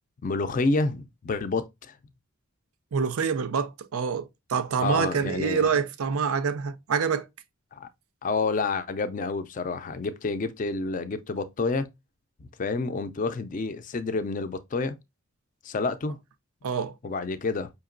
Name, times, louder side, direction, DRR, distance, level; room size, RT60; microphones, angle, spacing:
voice 1, 0.2-2.0 4.8-5.7 7.7-7.9 8.2-11.9 12.4-15.0 15.6-16.2 17.0-17.7, left 3 dB, 35° left, 0.4 m, -29 dB
voice 2, 2.9-7.3 16.6-16.9, right 6 dB, 90° right, 0.5 m, -26 dB
5.1 x 2.8 x 2.5 m
head